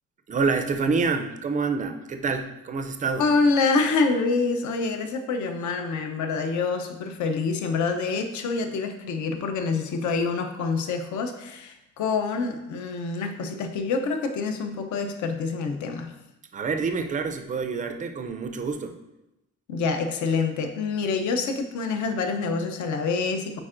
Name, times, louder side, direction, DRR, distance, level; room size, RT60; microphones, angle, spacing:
voice 1, 0.3-3.2 16.5-19.0, right 4 dB, 25° right, 7 dB, 0.4 m, -27 dB
voice 2, 3.2-16.1 19.7-23.6, left 4 dB, 65° left, 7 dB, 0.7 m, -26 dB
8.6 x 4.4 x 2.5 m, 0.94 s
cardioid pair, 165°, 32 cm